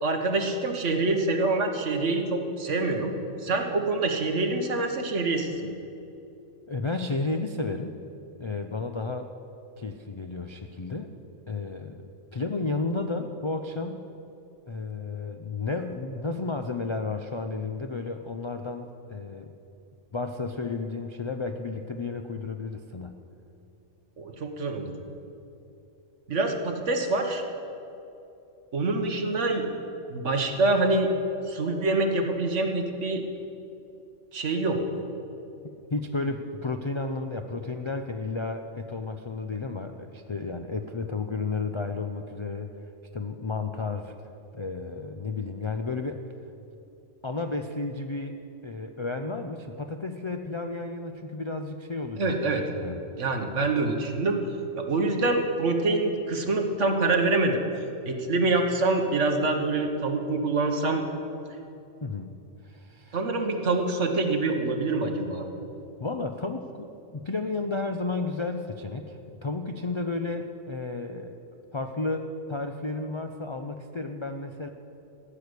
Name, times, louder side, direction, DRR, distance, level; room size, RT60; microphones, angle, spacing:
voice 1, 0.0-3.1 3.4-5.7 24.2-24.9 26.3-27.4 28.7-29.6 30.1-31.1 31.5-33.2 34.3-34.8 52.2-52.6 53.2-54.4 54.7-57.6 58.1-61.0 63.1-65.5, right 3 dB, 65° right, 4 dB, 1.6 m, -25 dB
voice 2, 6.7-8.0 8.4-9.3 9.8-11.1 11.5-14.1 14.7-19.5 20.1-23.2 35.9-42.7 43.1-44.1 44.5-46.2 47.2-48.4 48.6-53.0 62.0-62.4 62.6-63.2 66.0-71.4 71.7-74.7, left 3 dB, 40° left, 5 dB, 0.4 m, -32 dB
15.0 x 6.7 x 9.7 m, 2.8 s
omnidirectional pair, 1.3 m